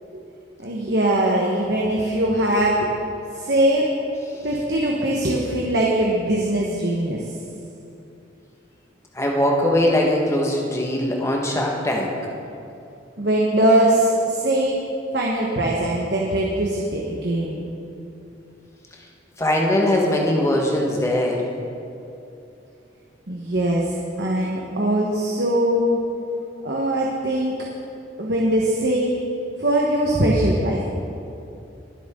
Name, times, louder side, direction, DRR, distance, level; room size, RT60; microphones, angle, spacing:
voice 1, 0.6-2.9 3.3-3.9 4.4-7.2 13.2-14.8 15.1-17.7 23.3-26.0 26.6-27.7 28.2-29.1 29.6-30.8, right 1 dB, 60° right, -2 dB, 1.2 m, -21 dB
voice 2, 9.1-12.1 19.4-21.5, left 1 dB, 15° left, -1 dB, 1.5 m, -21 dB
21.5 x 7.7 x 3.8 m, 2.7 s
head